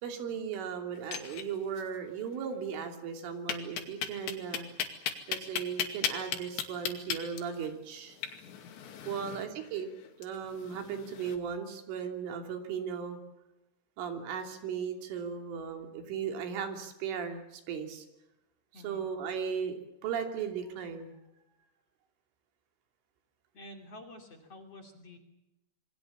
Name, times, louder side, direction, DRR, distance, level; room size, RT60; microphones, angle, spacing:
voice 1, 0.0-4.7 5.3-8.2 9.1-9.9 10.2-13.2 14.0-18.1 18.7-21.2, right 7 dB, 90° right, 5 dB, 5.4 m, -37 dB
sound 1, 1.0-1.9 2.1-2.2 2.5-2.6 3.5-11.4, left 9 dB, 70° left, 4.5 m, -37 dB
voice 2, 18.7-19.1 23.5-25.2, left 1 dB, 40° left, 3 dB, 3.2 m, -49 dB
27.5 x 23.5 x 7.3 m, 0.93 s
omnidirectional pair, 5.5 m